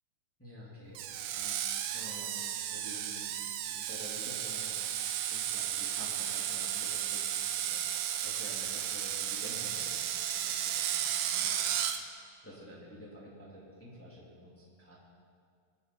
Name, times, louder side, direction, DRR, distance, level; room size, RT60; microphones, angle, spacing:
voice 1, 0.4-2.4 2.7-3.4 3.7-4.8 5.2-11.5 12.4-15.0, equal, 5° left, -7 dB, 1.2 m, -50 dB
Screech, 0.9-12.0, right 10 dB, 85° right, 2.2 m, -34 dB
21.0 x 7.5 x 4.6 m, 2.1 s
omnidirectional pair, 5.4 m